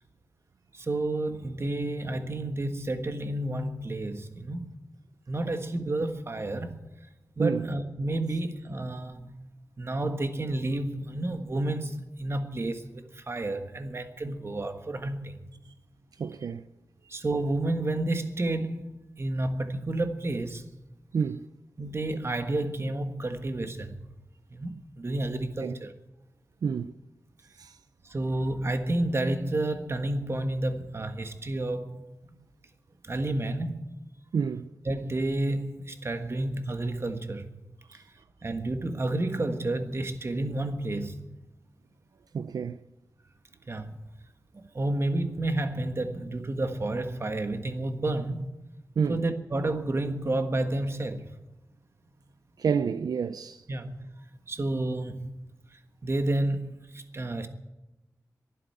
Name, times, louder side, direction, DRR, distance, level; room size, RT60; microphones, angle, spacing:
voice 1, 0.7-4.8 5.3-6.8 7.4-9.4 9.8-15.4 17.1-20.7 21.8-24.0 24.5-25.9 28.0-32.3 33.0-33.9 34.8-37.5 37.9-38.0 38.4-41.2 43.7-43.9 44.5-48.5 49.1-51.3 53.7-54.0 54.5-55.3 56.0-57.5, right 2 dB, 40° right, 1.4 m, -30 dB
voice 2, 16.2-16.6 21.1-21.5 25.6-25.8 26.6-26.9 27.6-27.8 34.3-34.7 37.9-38.0 42.3-42.8 49.0-49.2 52.6-53.6, right 6 dB, 85° right, 0.4 m, -29 dB
11.5 x 11.0 x 9.8 m
wide cardioid pair, 95°, 6 cm